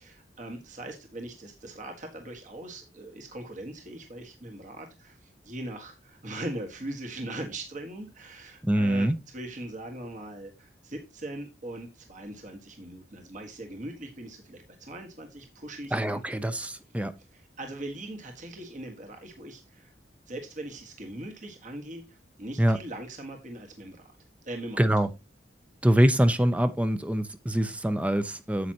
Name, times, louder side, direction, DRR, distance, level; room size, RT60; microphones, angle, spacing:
voice 1, 0.0-16.2 17.3-19.9 20.3-24.1 24.4-24.9, right 1 dB, 45° right, 1.6 m, -40 dB
voice 2, 8.6-9.2 15.9-17.1 22.6-22.8 24.8-25.1 25.8-28.7, right 1 dB, 10° right, 0.6 m, -24 dB
9.5 x 7.6 x 2.9 m
head